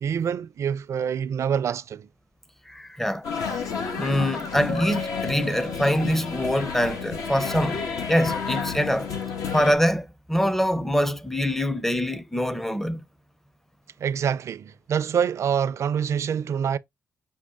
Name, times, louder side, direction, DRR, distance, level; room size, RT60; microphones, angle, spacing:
voice 1, 0.0-2.1 14.0-16.8, right 8 dB, 55° right, 0.4 m, -26 dB
voice 2, 2.7-3.3 3.9-7.8 8.1-9.1 9.5-13.0, equal, 5° left, 0.5 m, -24 dB
sound 1, 3.2-9.7, left 5 dB, 85° left, 1.2 m, -31 dB
Keyboard (musical), 4.7-7.1, left 2 dB, 50° left, 0.7 m, -38 dB
6.3 x 2.1 x 3.5 m
cardioid pair, 90°, 6 cm